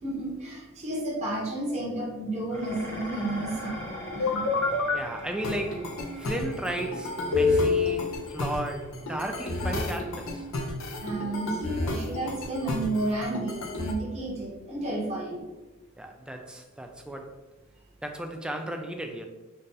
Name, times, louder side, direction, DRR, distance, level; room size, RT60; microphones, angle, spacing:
voice 1, 0.0-4.5 11.0-15.4, right 2 dB, 30° right, 1.0 m, -32 dB
Dishes pots and pans, 2.5-11.3, left 1 dB, 10° left, 0.9 m, -43 dB
sound 1, 4.2-5.0 5.4-13.9, left 3 dB, 75° left, 0.7 m, -29 dB
voice 2, 4.9-5.9 6.2-10.4 16.0-17.4 18.0-19.3, right 1 dB, 5° right, 0.3 m, -35 dB
4.0 x 2.5 x 3.7 m
head